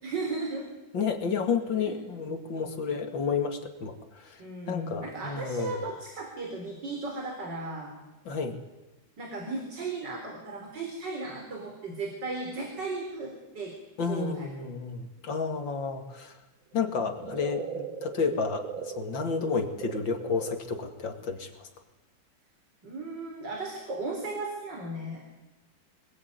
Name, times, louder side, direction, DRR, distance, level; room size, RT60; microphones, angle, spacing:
voice 1, 0.0-0.7 1.7-2.0 4.4-8.0 9.2-13.7 14.1-14.7 22.8-25.2, right 3 dB, 65° right, 1 dB, 4.6 m, -36 dB
voice 2, 0.9-4.4 4.7-5.9 8.3-8.6 14.0-16.4 16.7-21.7, left 5 dB, 75° left, 5 dB, 3.0 m, -31 dB
sound 1, 16.8-20.6, right 7 dB, 90° right, 2.4 m, -39 dB
26.0 x 20.0 x 9.5 m, 1.1 s
omnidirectional pair, 2.1 m